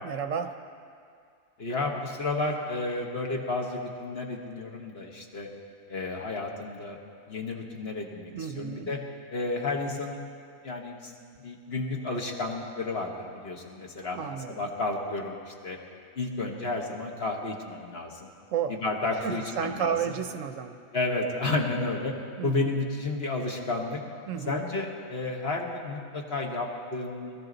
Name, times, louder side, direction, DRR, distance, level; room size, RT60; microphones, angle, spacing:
voice 1, 0.0-0.5 8.3-8.9 14.1-14.7 18.5-18.8 19.1-20.8 22.4-22.7 24.3-24.6, right 8 dB, 70° right, 8 dB, 1.0 m, -32 dB
voice 2, 1.6-5.5 5.9-7.0 7.3-9.0 9.3-10.2 10.6-11.1 11.4-15.8 16.2-18.3 18.7-20.1 20.9-22.1 22.4-24.0 24.5-27.3, left 2 dB, 45° left, 1 dB, 1.5 m, -32 dB
21.0 x 14.0 x 4.0 m, 2.3 s
omnidirectional pair, 1.5 m